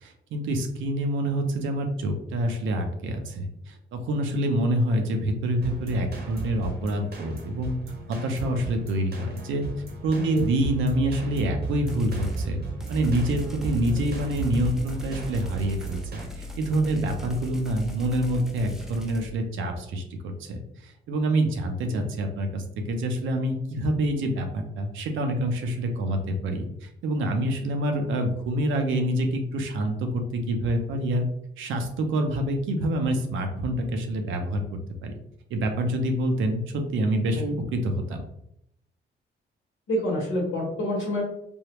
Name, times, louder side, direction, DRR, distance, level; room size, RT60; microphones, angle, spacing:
voice 1, 0.0-7.8 8.1-9.6 10.0-12.6 12.9-31.3 31.6-34.6 35.0-35.1 35.5-37.4 37.7-38.2, right 1 dB, 75° right, 5 dB, 0.6 m, -27 dB
sound 1, 5.6-16.3, right 3 dB, 55° right, 0.9 m, -35 dB
sound 2, 11.9-12.4 12.8-19.3, right 1 dB, ahead, 0.5 m, -39 dB
voice 2, 39.9-41.2, equal, 75° left, -4 dB, 1.1 m, -27 dB
3.4 x 2.3 x 2.9 m, 0.76 s
cardioid pair, 90°, 20 cm